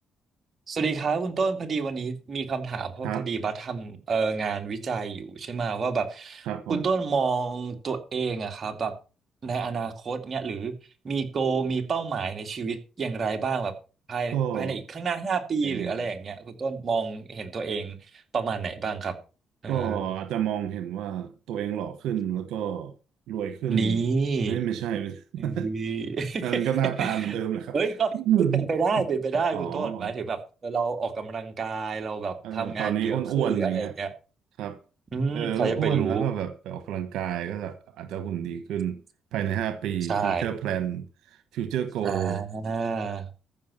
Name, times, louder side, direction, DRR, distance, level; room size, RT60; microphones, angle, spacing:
voice 1, 0.7-8.9 9.4-10.7 11.0-13.7 14.1-18.0 18.3-19.1 19.6-20.1 23.7-24.6 25.4-26.6 27.0-27.4 27.7-28.1 28.4-34.1 35.1-36.3 40.1-40.5 42.0-43.3, right 5 dB, 45° right, 2.5 m, -29 dB
voice 2, 6.5-6.9 14.3-14.8 15.6-16.0 19.7-22.9 23.3-24.0 24.5-25.7 26.4-27.7 28.1-28.7 29.0-29.1 29.5-30.1 32.4-33.9 34.6-34.8 35.3-39.0 39.3-41.1 41.5-42.4, right 10 dB, 85° right, 1.2 m, -29 dB
14.5 x 6.1 x 7.0 m
cardioid pair, 90°, 0 cm